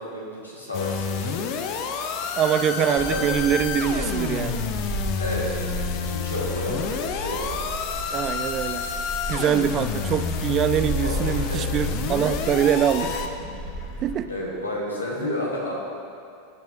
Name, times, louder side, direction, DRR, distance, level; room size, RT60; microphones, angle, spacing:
voice 1, 0.0-1.4 2.8-3.2 5.2-7.5 11.0-11.7 13.9-14.0 14.3-15.7, left 1 dB, 90° left, -4 dB, 1.7 m, -31 dB
sound 1, 0.7-13.3, left 7 dB, 50° left, 0.6 m, -29 dB
voice 2, 2.4-4.6 8.1-8.9 9.3-13.2 14.0-14.3, right 9 dB, 35° right, 12 dB, 0.3 m, -24 dB
Gull seagull, 3.0-14.2, right 1 dB, 15° left, 2.2 m, -34 dB
15.0 x 6.1 x 2.8 m, 2.4 s
figure-of-eight pair, 85°, 0 cm